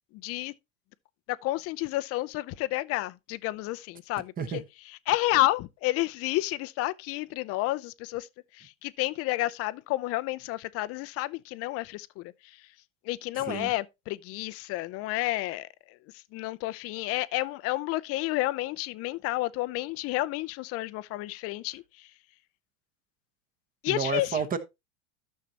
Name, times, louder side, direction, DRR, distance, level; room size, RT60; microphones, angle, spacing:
voice 1, 0.1-0.5 1.4-4.6 5.1-8.3 8.6-12.3 13.1-15.7 16.3-22.1 23.8-24.4, left 18 dB, 40° left, 0.5 m, -30 dB
voice 2, 13.3-13.7 23.9-24.6, right 6 dB, 20° right, 1.1 m, -30 dB
13.0 x 6.5 x 2.8 m
supercardioid pair, 130°, 38 cm